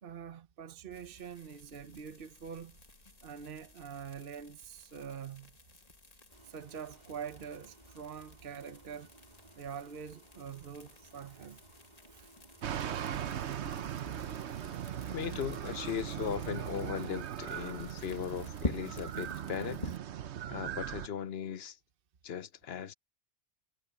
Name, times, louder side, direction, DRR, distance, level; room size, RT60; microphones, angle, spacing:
voice 1, 0.0-2.8 3.2-5.5 6.4-9.1 9.6-11.6 12.1-12.3, right 7 dB, 55° right, 1.1 m, -45 dB
sound 1, 0.9-20.0, left 2 dB, 35° left, 2.1 m, -48 dB
sound 2, 6.3-15.4, right 2 dB, 40° right, 2.5 m, -60 dB
sound 3, 12.6-21.1, right 10 dB, 75° right, 1.1 m, -39 dB
voice 2, 15.1-19.9 20.5-21.8 22.2-22.9, left 8 dB, 65° left, 1.0 m, -38 dB
omnidirectional pair, 1.2 m